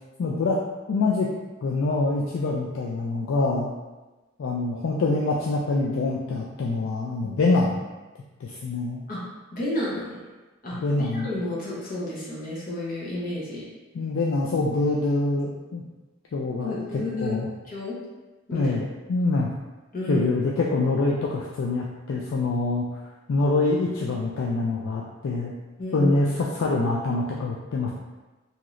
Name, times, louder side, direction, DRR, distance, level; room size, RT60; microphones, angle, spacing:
voice 1, 0.2-0.6 0.9-1.3 1.6-3.7 4.4-7.8 8.4-9.0 10.7-11.3 13.9-15.8 16.3-16.7 17.2-17.5 18.5-19.5 20.1-22.9 23.3-25.5 25.9-27.9, left 3 dB, 85° left, -3 dB, 0.4 m, -25 dB
voice 2, 7.2-7.6 9.1-9.2 9.5-10.2 10.6-13.6 16.6-17.4 17.7-18.0 18.5-18.7 19.9-20.3 25.8-26.1, left 1 dB, 45° left, -6 dB, 0.7 m, -31 dB
2.8 x 2.4 x 3.0 m, 1.1 s
head